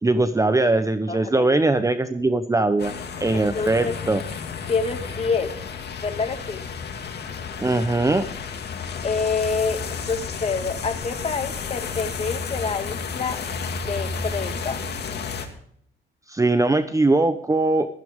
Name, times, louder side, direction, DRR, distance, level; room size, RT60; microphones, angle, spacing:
voice 1, 0.0-2.9 3.2-4.2 7.6-8.2 16.3-17.9, right 2 dB, 15° right, 10 dB, 0.9 m, -21 dB
voice 2, 1.1-1.5 3.3-3.9 4.7-5.5 6.0-6.6 9.0-13.4 13.9-14.8, left 4 dB, 35° left, 7 dB, 1.8 m, -27 dB
sound 1, 2.8-15.5, left 5 dB, 55° left, 2.3 m, -32 dB
14.5 x 14.0 x 3.7 m, 0.66 s
cardioid pair, 90°, 20 cm